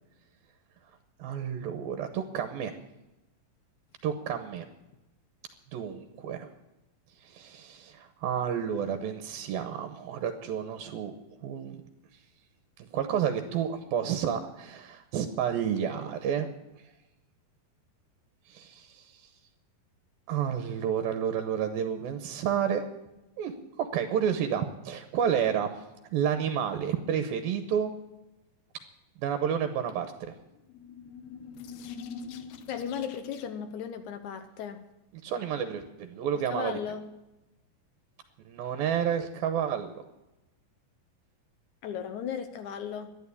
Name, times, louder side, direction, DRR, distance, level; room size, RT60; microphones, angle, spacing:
voice 1, 1.2-2.7 4.0-4.7 5.7-6.5 7.2-11.2 11.4-11.8 12.8-16.5 18.5-19.2 20.3-22.9 23.4-23.5 23.8-25.7 26.1-27.9 29.2-30.3 35.2-36.7 38.5-40.0, right 8 dB, 80° right, 8 dB, 2.7 m, -30 dB
sound 1, 30.5-33.7, left 6 dB, 85° left, 2.9 m, -43 dB
voice 2, 32.7-34.8 36.5-37.1 41.8-43.1, left 8 dB, 70° left, 8 dB, 1.9 m, -36 dB
12.0 x 11.0 x 8.3 m, 0.97 s
omnidirectional pair, 4.2 m